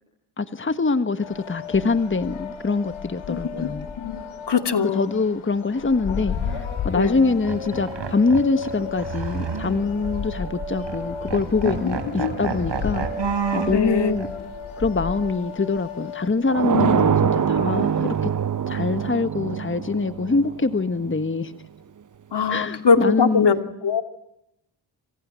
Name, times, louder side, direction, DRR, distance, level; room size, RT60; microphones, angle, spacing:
voice 1, 0.4-3.9 4.9-6.6 6.8-13.1 13.5-14.3 14.8-18.3 18.7-21.5 22.5-23.5, left 3 dB, 25° left, 10 dB, 1.6 m, -24 dB
sound 1, 1.2-16.3, left 5 dB, 80° left, 6.0 m, -33 dB
voice 2, 3.3-3.7 4.0-5.1 6.9-7.2 11.6-11.9 12.2-12.3 13.7-14.2 16.7-16.9 20.3-20.4 22.3-24.0, left 5 dB, 55° left, 8 dB, 2.9 m, -22 dB
sound 2, 6.3-6.6 7.2-10.1 10.4-10.5 10.8-11.0 11.3-13.8 14.2-14.3 17.5-18.4, right 5 dB, 60° right, 6.1 m, -31 dB
sound 3, 16.5-21.2, right 7 dB, 40° right, 1.0 m, -23 dB
27.5 x 26.5 x 7.7 m, 0.87 s
cardioid pair, 55°, 48 cm